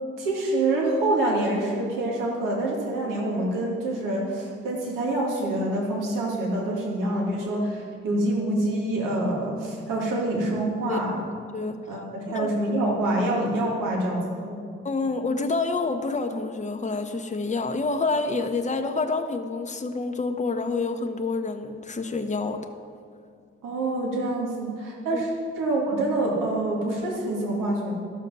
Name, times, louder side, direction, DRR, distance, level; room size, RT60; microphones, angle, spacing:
voice 1, 0.2-11.3 11.9-14.6 23.6-25.3 25.6-27.9, right 1 dB, 80° right, -2 dB, 2.2 m, -26 dB
voice 2, 14.8-22.7 25.1-25.2, left 3 dB, 20° left, 5 dB, 1.0 m, -28 dB
12.5 x 6.3 x 5.5 m, 2.2 s
supercardioid pair, 45°, 32 cm